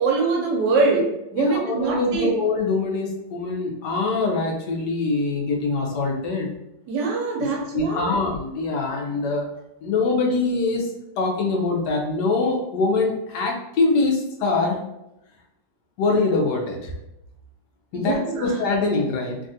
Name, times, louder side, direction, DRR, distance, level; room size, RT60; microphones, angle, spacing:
voice 1, 0.0-2.3 6.9-8.2 17.9-18.6, right 3 dB, 75° right, 0 dB, 1.3 m, -23 dB
voice 2, 1.4-6.5 7.7-9.5 9.8-14.8 16.0-16.9 17.9-19.4, left 3 dB, 70° left, 0 dB, 1.2 m, -23 dB
3.3 x 2.4 x 2.6 m, 0.87 s
omnidirectional pair, 1.9 m